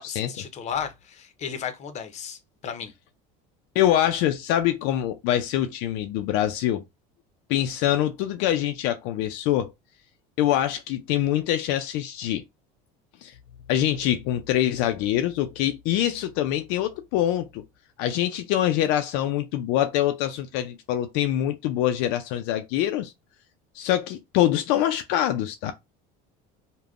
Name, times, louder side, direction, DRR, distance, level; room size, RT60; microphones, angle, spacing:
voice 1, 0.0-2.9, left 8 dB, 40° left, 0.7 m, -34 dB
voice 2, 3.8-6.8 7.5-9.7 10.4-12.4 13.2-13.3 13.7-17.6 18.0-23.1 23.7-25.7, left 12 dB, 70° left, 0.4 m, -24 dB
3.4 x 2.1 x 2.4 m
supercardioid pair, 120°, 18 cm